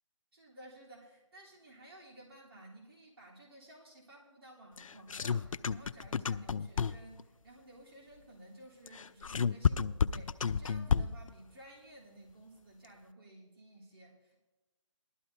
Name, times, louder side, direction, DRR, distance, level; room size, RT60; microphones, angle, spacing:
voice 1, 0.3-14.4, right 1 dB, 50° right, -3 dB, 3.4 m, -55 dB
sound 1, 4.8-7.2 8.9-11.3, left 6 dB, 85° left, 0.4 m, -31 dB
17.5 x 12.0 x 2.7 m, 1.1 s
figure-of-eight pair, 160°, 17 cm